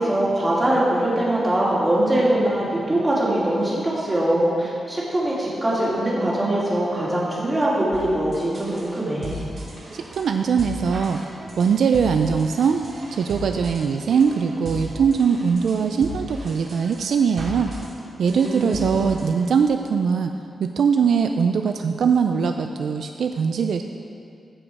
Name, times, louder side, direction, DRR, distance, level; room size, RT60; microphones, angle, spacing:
voice 1, 0.0-9.3 18.3-18.9, right 1 dB, 20° right, -7 dB, 2.6 m, -22 dB
polyrhythm loop, 7.9-19.4, right 1 dB, 60° right, 2.2 m, -36 dB
voice 2, 9.9-11.2 11.6-17.7 18.2-20.3 20.6-23.8, right 6 dB, 75° right, 6 dB, 0.4 m, -21 dB
14.5 x 5.1 x 4.8 m, 2.5 s
wide cardioid pair, 125°, 0 cm